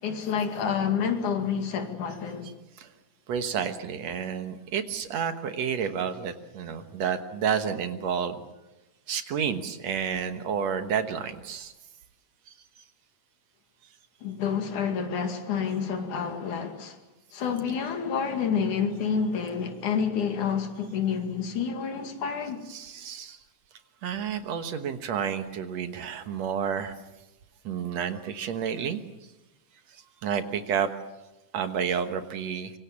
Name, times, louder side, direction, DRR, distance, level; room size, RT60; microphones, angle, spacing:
voice 1, 0.0-2.5 14.2-17.0 17.3-22.6, left 6 dB, 75° left, 3.6 m, -28 dB
voice 2, 3.3-8.4 9.1-11.7 22.7-23.4 24.0-27.0 27.6-29.0 30.2-30.9 31.5-32.7, right 7 dB, 65° right, 2.3 m, -30 dB
25.5 x 24.0 x 7.4 m
omnidirectional pair, 3.5 m